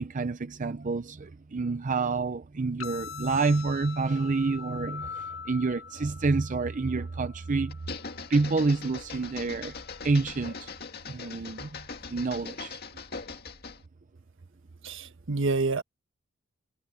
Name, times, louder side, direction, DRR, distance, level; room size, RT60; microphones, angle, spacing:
voice 1, 0.0-7.8 8.3-9.8 10.0-10.7 11.1-12.8, right 3 dB, 40° right, 0.6 m, -28 dB
sound 1, 2.8-10.8, left 6 dB, 70° left, 2.0 m, -44 dB
sound 2, 7.7-13.8, left 4 dB, 50° left, 2.1 m, -41 dB
voice 2, 14.8-15.8, right 3 dB, 65° right, 1.4 m, -28 dB
head